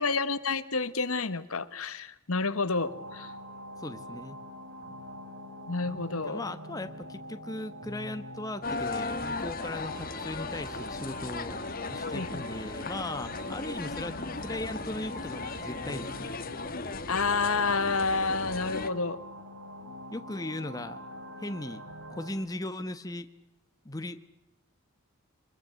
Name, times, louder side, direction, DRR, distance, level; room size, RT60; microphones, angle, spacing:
voice 1, 0.0-3.3 5.7-6.4 12.1-12.5 17.1-19.2, left 4 dB, 75° left, 13 dB, 1.4 m, -29 dB
sound 1, 2.8-22.3, right 1 dB, 65° right, 3.5 m, -44 dB
voice 2, 3.8-4.4 6.2-11.6 11.9-16.3 20.1-21.0 21.4-21.8 22.1-23.3 23.8-24.2, left 1 dB, 15° left, 8 dB, 1.1 m, -38 dB
sound 2, 8.6-18.9, left 3 dB, 40° left, 1.5 m, -37 dB
25.0 x 21.5 x 8.0 m, 0.85 s
head